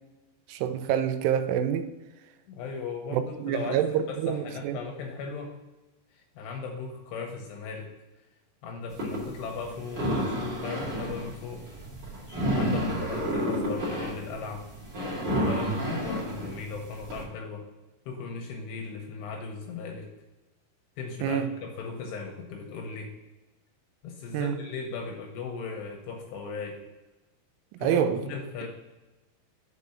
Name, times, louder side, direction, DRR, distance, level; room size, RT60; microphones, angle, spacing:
voice 1, 0.5-1.9 3.1-4.8 21.2-21.5 24.3-24.6 27.8-28.2, right 9 dB, 85° right, 2.9 m, -27 dB
voice 2, 2.5-5.5 6.1-7.9 8.6-11.7 12.3-14.7 15.5-17.6 18.1-20.1 21.0-23.1 24.0-26.8 27.8-28.7, left 4 dB, 75° left, 2.6 m, -37 dB
sound 1, 8.9-17.2, equal, 35° right, 2.0 m, -30 dB
6.7 x 4.9 x 6.8 m
omnidirectional pair, 5.6 m